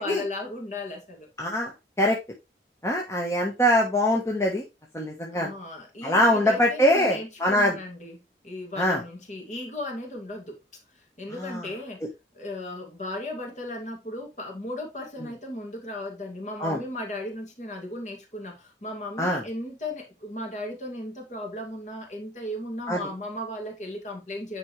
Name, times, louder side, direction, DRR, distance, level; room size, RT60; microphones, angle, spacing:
voice 1, 0.0-1.3 5.3-8.2 8.4-10.6 11.2-12.1 12.3-24.6, left 1 dB, 40° left, 2.4 m, -36 dB
voice 2, 1.4-1.7 2.0-2.2 2.8-4.6 4.9-5.5 6.0-7.7 8.8-9.0 11.4-11.6 16.6-16.8 19.2-19.4 22.9-23.0, left 1 dB, 15° left, 1.2 m, -23 dB
9.6 x 5.0 x 3.2 m
head